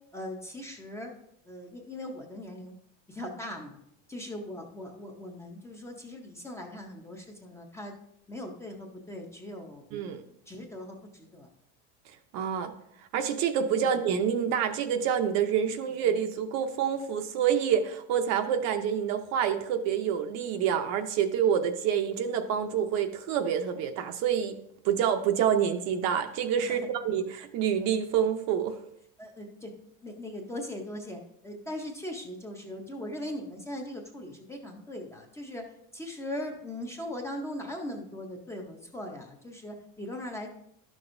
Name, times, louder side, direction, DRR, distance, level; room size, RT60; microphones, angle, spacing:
voice 1, 0.1-1.1 1.5-2.7 3.1-3.8 4.1-7.9 8.3-9.8 10.5-11.5 26.6-26.9 29.2-29.7 30.0-35.6 35.9-40.5, left 1 dB, 5° left, 1 dB, 0.6 m, -39 dB
voice 2, 9.9-10.2 12.3-12.7 13.1-24.5 24.8-28.7, right 8 dB, 45° right, 8 dB, 0.6 m, -27 dB
11.5 x 6.1 x 2.5 m, 0.73 s
cardioid pair, 155°, 37 cm